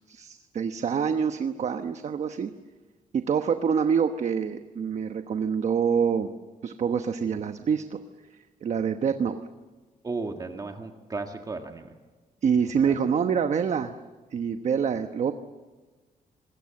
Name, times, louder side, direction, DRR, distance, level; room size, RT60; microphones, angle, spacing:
voice 1, 0.1-2.5 3.1-6.3 6.6-8.0 8.3-9.4 12.4-13.9 14.3-15.3, right 7 dB, 50° right, 8 dB, 1.1 m, -26 dB
voice 2, 10.0-11.9 12.8-13.0, right 3 dB, 25° right, 4 dB, 1.7 m, -35 dB
26.0 x 21.5 x 7.7 m, 1.3 s
wide cardioid pair, 150°, 15 cm